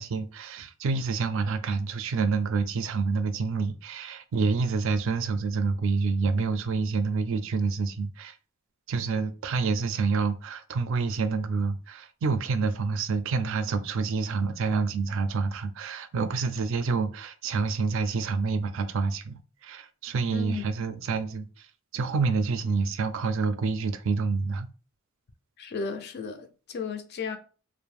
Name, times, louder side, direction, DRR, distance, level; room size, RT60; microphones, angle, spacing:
voice 1, 0.0-8.4 8.9-21.7 21.9-24.7, right 4 dB, 65° right, 0.3 m, -28 dB
voice 2, 20.3-20.7 25.6-27.4, left 5 dB, 50° left, 0.3 m, -34 dB
2.5 x 2.0 x 3.1 m
head